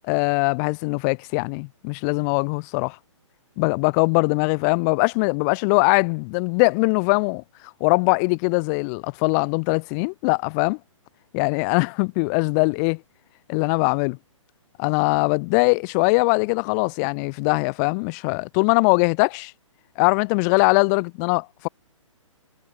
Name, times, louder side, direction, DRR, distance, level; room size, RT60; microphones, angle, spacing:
voice 1, 0.1-3.0 3.6-7.4 7.8-10.8 11.3-13.0 13.5-14.2 14.8-19.5 20.0-21.7, left 35 dB, 30° left, 7.8 m, -21 dB
hypercardioid pair, 135°, 17 cm